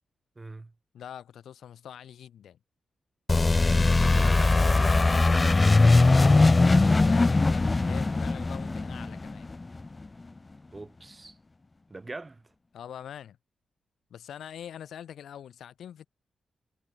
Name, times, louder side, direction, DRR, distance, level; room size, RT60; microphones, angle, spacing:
voice 1, 0.4-0.7 3.8-5.9 10.7-11.4 11.9-12.4, right 3 dB, 30° right, 1.9 m, -42 dB
voice 2, 0.9-2.6 5.9-9.5 12.7-13.4 14.1-16.1, left 9 dB, 80° left, 5.5 m, -43 dB
sound 1, 3.3-9.9, left 3 dB, 35° left, 0.3 m, -21 dB
supercardioid pair, 45°, 0 cm